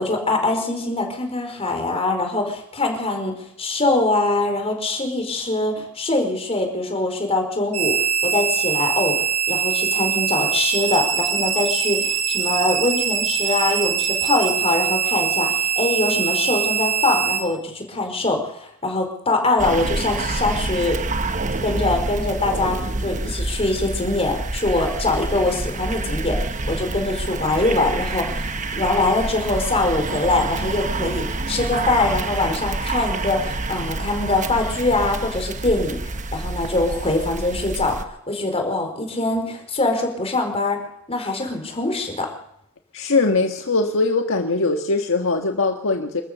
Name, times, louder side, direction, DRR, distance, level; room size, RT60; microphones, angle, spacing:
voice 1, 0.0-8.0 8.2-21.0 21.6-38.0 38.3-40.8 41.1-42.3, left 2 dB, 25° left, 4 dB, 4.9 m, -23 dB
sound 1, 7.7-17.4, right 8 dB, 75° right, 5.5 m, -22 dB
sound 2, 19.6-38.0, right 2 dB, 35° right, 1.1 m, -27 dB
voice 2, 42.9-46.2, left 3 dB, 60° left, 4 dB, 1.6 m, -21 dB
27.5 x 13.5 x 6.9 m, 0.74 s
head